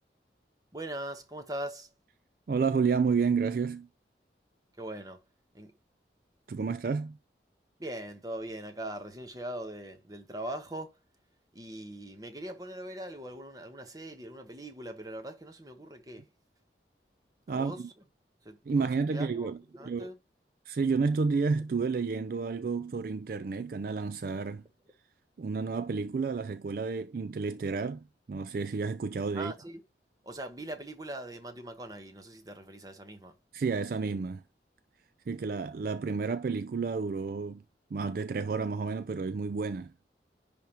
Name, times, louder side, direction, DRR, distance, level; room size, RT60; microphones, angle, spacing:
voice 1, 0.7-1.9 4.8-5.2 5.5-5.7 7.8-11.0 11.5-16.3 17.5-17.8 18.4-20.2 29.3-29.8 30.2-33.4, right 1 dB, 20° right, 1.1 m, -41 dB
voice 2, 2.5-3.9 6.5-7.2 17.5-17.9 18.7-19.6 19.9-20.1 20.7-24.6 25.4-29.5 33.5-34.4 35.3-37.6 37.9-39.9, right 5 dB, 55° right, 0.3 m, -30 dB
10.5 x 3.5 x 2.9 m
head